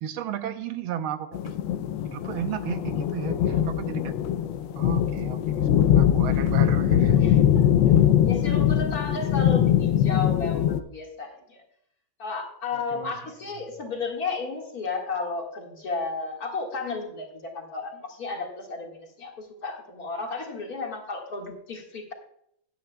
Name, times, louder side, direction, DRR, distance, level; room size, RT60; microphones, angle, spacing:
voice 1, 0.0-1.6 2.0-4.2 4.8-7.2 12.7-13.2, right 9 dB, 90° right, 10 dB, 1.6 m, -34 dB
sound 1, 1.3-10.8, left 10 dB, 75° left, 1.3 m, -22 dB
voice 2, 7.2-7.7 8.2-11.6 12.2-22.1, left 4 dB, 45° left, 1 dB, 2.2 m, -33 dB
17.0 x 9.6 x 2.2 m, 0.72 s
omnidirectional pair, 2.3 m